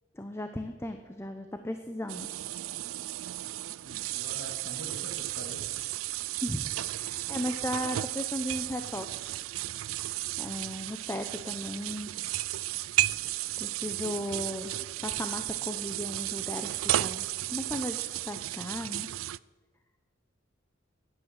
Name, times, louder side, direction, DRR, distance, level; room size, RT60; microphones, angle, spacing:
voice 1, 0.1-2.3 6.4-9.1 10.4-12.1 13.6-14.7 15.0-19.1, left 1 dB, 15° left, 6 dB, 0.9 m, -36 dB
sound 1, 2.1-19.4, right 15 dB, 85° right, 0.4 m, -34 dB
voice 2, 3.8-5.7, equal, 65° left, 3 dB, 2.5 m, -45 dB
16.0 x 11.0 x 7.4 m, 1.3 s
head